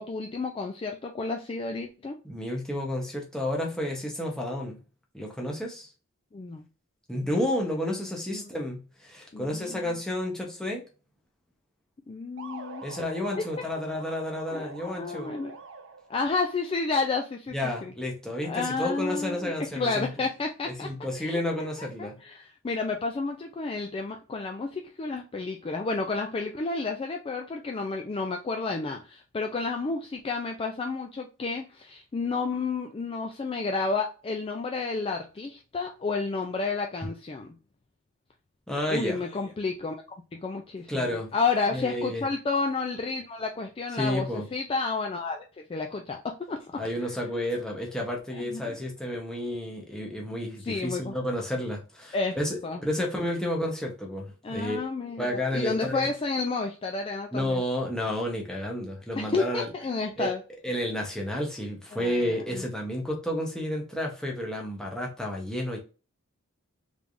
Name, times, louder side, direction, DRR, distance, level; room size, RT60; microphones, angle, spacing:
voice 1, 0.0-2.2 6.3-6.6 7.2-7.3 8.3-8.5 9.3-9.9 12.1-12.9 13.6-13.7 14.5-15.6 16.1-17.5 17.8-17.9 18.4-20.9 21.2-21.4 22.0-37.5 38.9-40.0 40.3-46.8 48.3-48.8 50.6-51.2 52.1-52.4 52.6-52.8 54.4-57.6 59.2-60.4 61.9-62.6, left 4 dB, 25° left, 0.3 m, -31 dB
voice 2, 2.2-4.8 5.1-5.9 7.1-10.8 12.8-15.3 17.5-20.1 20.7-22.2 38.7-39.2 40.9-41.3 41.7-42.3 44.0-44.5 46.8-54.9 55.2-56.1 57.3-59.7 60.2-60.3 60.6-65.8, left 1 dB, 5° left, 0.9 m, -31 dB
sound 1, 12.4-16.3, right 4 dB, 60° right, 0.6 m, -45 dB
3.4 x 3.3 x 2.5 m
head